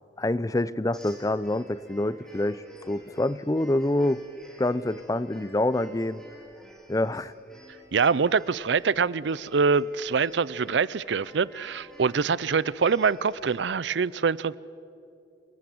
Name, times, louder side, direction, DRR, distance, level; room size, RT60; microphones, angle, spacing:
voice 1, 0.2-4.2 4.6-6.2 6.9-7.3, left 1 dB, 20° left, 0.5 m, -26 dB
sound 1, 0.9-13.6, equal, 5° left, 4.1 m, -51 dB
voice 2, 7.9-14.6, right 5 dB, 75° right, 0.5 m, -24 dB
28.0 x 19.5 x 7.8 m
head